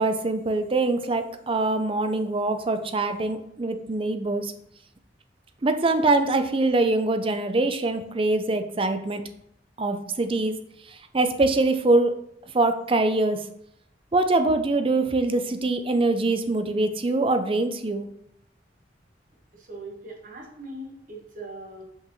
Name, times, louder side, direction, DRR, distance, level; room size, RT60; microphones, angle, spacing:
voice 1, 0.0-4.5 5.6-9.2 9.8-10.5 11.1-12.1 12.5-13.4 14.1-18.1, right 2 dB, 30° right, 8 dB, 0.5 m, -23 dB
voice 2, 19.5-21.8, right 2 dB, 45° right, 1 dB, 1.4 m, -40 dB
6.1 x 5.2 x 3.1 m, 0.73 s
head